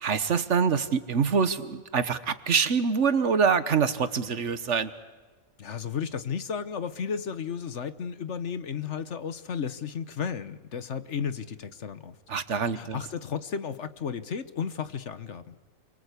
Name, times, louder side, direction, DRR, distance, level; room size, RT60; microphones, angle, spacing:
voice 1, 0.0-4.9 12.3-13.0, right 6 dB, 60° right, 13 dB, 1.4 m, -25 dB
voice 2, 5.6-12.2 12.7-15.6, left 7 dB, 55° left, 13 dB, 1.3 m, -33 dB
29.5 x 24.0 x 8.3 m, 1.3 s
omnidirectional pair, 1.5 m